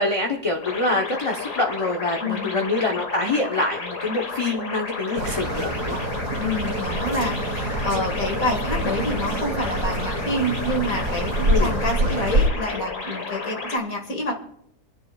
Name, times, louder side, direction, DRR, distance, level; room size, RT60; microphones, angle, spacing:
voice 1, 0.0-6.0 11.5-11.7, left 2 dB, 25° left, 0 dB, 0.8 m, -25 dB
sound 1, 0.6-13.8, left 4 dB, 80° left, 2.0 m, -32 dB
sound 2, 5.2-12.5, right 1 dB, 80° right, 2.2 m, -26 dB
voice 2, 6.4-14.3, left 1 dB, 60° left, 1 dB, 2.2 m, -27 dB
27.0 x 10.5 x 2.4 m, 0.74 s
omnidirectional pair, 1.7 m